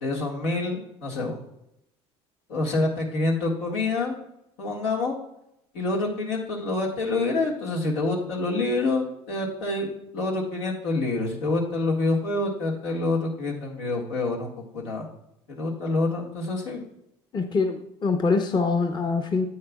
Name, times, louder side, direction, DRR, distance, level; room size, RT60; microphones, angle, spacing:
voice 1, 0.0-1.4 2.5-4.2 4.6-5.1 5.7-9.9 10.1-15.1 15.5-16.8, left 2 dB, 85° left, -1 dB, 1.9 m, -27 dB
voice 2, 17.3-19.5, left 4 dB, 30° left, 6 dB, 0.9 m, -24 dB
9.6 x 7.8 x 2.4 m, 0.81 s
supercardioid pair, 85°, 14 cm